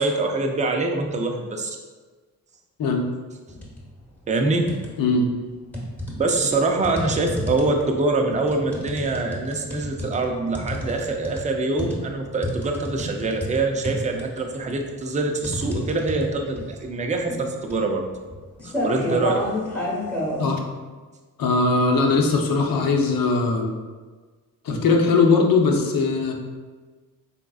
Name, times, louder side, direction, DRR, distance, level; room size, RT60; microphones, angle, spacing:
voice 1, 0.0-1.8 4.3-4.7 6.2-18.1 18.6-19.4, right 3 dB, 20° right, 3 dB, 0.4 m, -24 dB
sound 1, 3.5-3.9 4.3-5.2 5.7-20.4, left 1 dB, 5° left, 1.0 m, -31 dB
voice 2, 5.0-5.3 19.0-19.2 20.4-20.6 21.4-23.7 24.6-26.3, left 3 dB, 60° left, 1 dB, 0.7 m, -20 dB
4.0 x 3.6 x 2.3 m, 1.4 s
cardioid pair, 80°, 39 cm